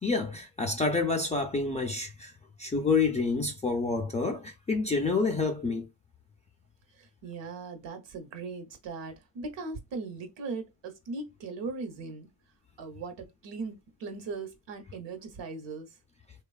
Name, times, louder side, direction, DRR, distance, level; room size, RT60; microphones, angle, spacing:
voice 1, 0.0-2.3 2.6-5.9, left 4 dB, 15° left, 0.4 m, -28 dB
voice 2, 6.9-12.3 12.8-15.9, right 4 dB, 60° right, 1.0 m, -39 dB
3.0 x 2.3 x 2.3 m
cardioid pair, 95°, 49 cm